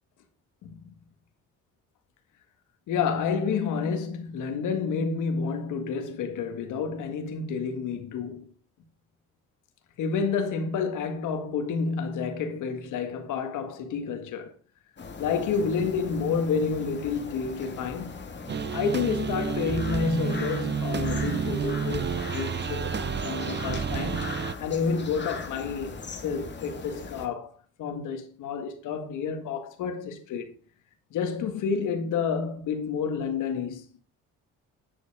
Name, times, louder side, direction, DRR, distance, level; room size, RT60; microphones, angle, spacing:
voice 1, 2.9-8.5 10.0-14.5 15.2-18.2 18.7-22.9 23.2-26.0 26.2-27.5 27.8-30.5 31.1-33.9, left 5 dB, 85° left, 1.9 m, -29 dB
sound 1, 15.0-27.3, left 4 dB, 35° left, 2.2 m, -39 dB
sound 2, 18.5-24.5, right 6 dB, 35° right, 0.8 m, -30 dB
10.0 x 7.0 x 4.9 m
cardioid pair, 90°, 30 cm